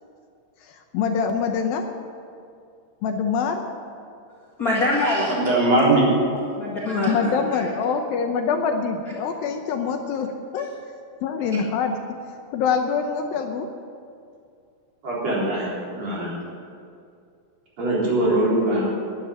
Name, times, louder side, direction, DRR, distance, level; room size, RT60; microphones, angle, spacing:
voice 1, 0.6-1.8 3.0-3.6 7.1-10.7 11.2-12.0 12.5-13.7, left 6 dB, 75° left, 5 dB, 2.5 m, -25 dB
voice 2, 4.6-5.5 6.6-7.6, left 1 dB, 35° left, -5 dB, 1.5 m, -24 dB
voice 3, 5.3-6.0 15.0-15.6 15.9-16.4 17.8-18.9, right 2 dB, 45° right, -7 dB, 4.9 m, -21 dB
11.5 x 10.0 x 9.9 m, 2.4 s
omnidirectional pair, 4.5 m